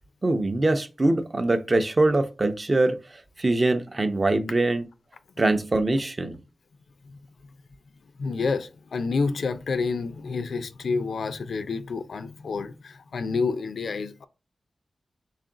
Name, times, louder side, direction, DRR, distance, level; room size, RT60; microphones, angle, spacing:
voice 1, 0.2-4.9 5.4-6.4, right 2 dB, 35° right, 0.5 m, -23 dB
voice 2, 8.2-14.3, left 4 dB, 80° left, 0.4 m, -29 dB
3.6 x 2.4 x 3.7 m
wide cardioid pair, 70°, 0 cm